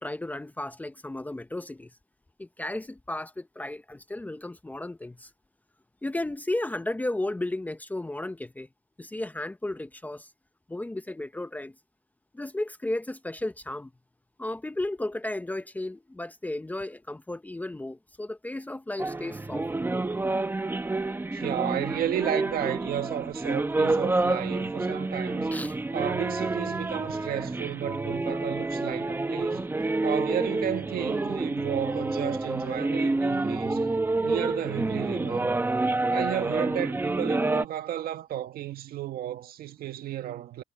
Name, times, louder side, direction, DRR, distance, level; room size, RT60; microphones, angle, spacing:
voice 1, 0.0-1.9 2.4-5.3 6.0-8.7 9.0-10.3 10.7-11.7 12.3-13.9 14.4-19.7 25.5-25.8, left 1 dB, 10° left, 0.8 m, -34 dB
sound 1, 19.0-37.6, right 2 dB, 10° right, 1.2 m, -28 dB
voice 2, 21.3-25.5 25.9-29.6 30.0-33.8 34.2-35.5 36.1-40.6, right 11 dB, 65° right, 1.7 m, -33 dB
cardioid pair, 110°, 17 cm